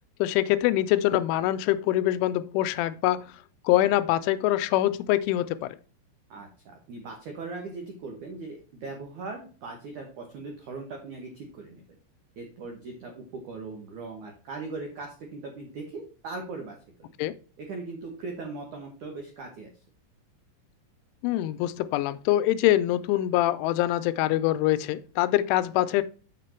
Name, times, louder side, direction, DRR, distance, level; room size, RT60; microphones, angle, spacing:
voice 1, 0.2-3.3 3.7-5.8 17.2-17.3 21.2-26.0, left 14 dB, 85° left, 13 dB, 2.9 m, -24 dB
voice 2, 6.3-11.8 12.4-17.1 17.6-19.7, right 3 dB, 75° right, 2 dB, 1.7 m, -39 dB
6.8 x 6.6 x 4.3 m, 0.37 s
omnidirectional pair, 5.6 m